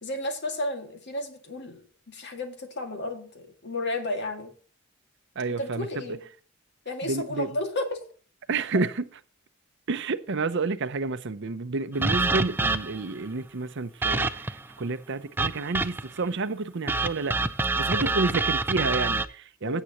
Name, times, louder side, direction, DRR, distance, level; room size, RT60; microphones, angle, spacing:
voice 1, 0.0-4.5 5.6-6.2 6.9-8.0 18.0-18.2 19.6-19.8, left 1 dB, 55° left, 2.2 m, -33 dB
voice 2, 5.4-6.1 7.0-7.6 8.5-9.1 9.9-17.5 17.8-19.8, right 3 dB, 60° right, 0.7 m, -30 dB
sound 1, 12.0-13.1 14.0-14.6 15.4-16.2 16.9-19.3, right 3 dB, 10° right, 0.5 m, -26 dB
16.5 x 8.2 x 3.0 m
head